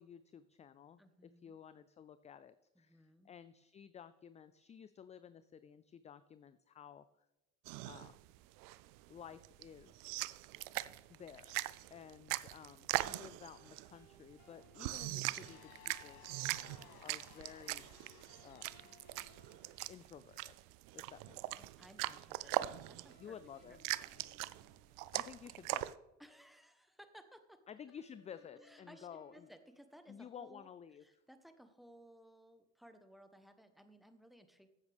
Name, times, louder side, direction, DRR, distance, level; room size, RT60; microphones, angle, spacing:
voice 1, 0.0-7.3 7.9-8.1 9.1-10.0 11.1-11.6 11.9-16.2 17.0-17.8 18.4-18.7 19.9-20.6 20.9-21.6 23.2-23.8 25.1-25.9 27.7-29.5 30.1-31.2, left 8 dB, 20° left, 14 dB, 0.3 m, -54 dB
voice 2, 1.0-1.6 2.7-3.3 21.6-23.4 23.7-24.3 26.2-27.6 28.6-30.7 31.0-34.7, equal, ahead, 9 dB, 1.1 m, -60 dB
sound 1, 7.7-25.9, right 18 dB, 65° right, 0.5 m, -41 dB
sound 2, 13.5-15.6 18.3-20.7 23.1-25.6 27.9-30.7, left 2 dB, 45° left, 4.3 m, -67 dB
sound 3, 15.3-20.0, left 14 dB, 70° left, 0.8 m, -61 dB
15.0 x 7.9 x 3.5 m, 0.97 s
supercardioid pair, 90°, 35 cm